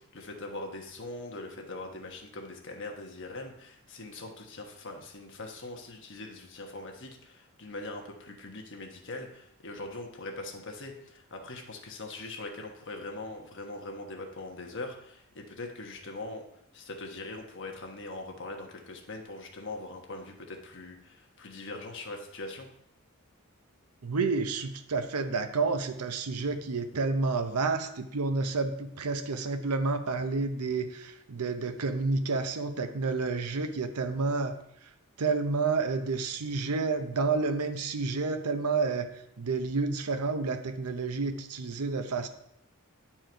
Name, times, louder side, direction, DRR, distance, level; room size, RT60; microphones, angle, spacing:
voice 1, 0.0-16.4 16.7-22.7, left 2 dB, 55° left, 2 dB, 1.2 m, -41 dB
voice 2, 24.0-34.6 35.2-39.1 39.4-42.3, right 4 dB, 90° right, 8 dB, 0.8 m, -30 dB
9.4 x 4.5 x 4.5 m, 0.76 s
head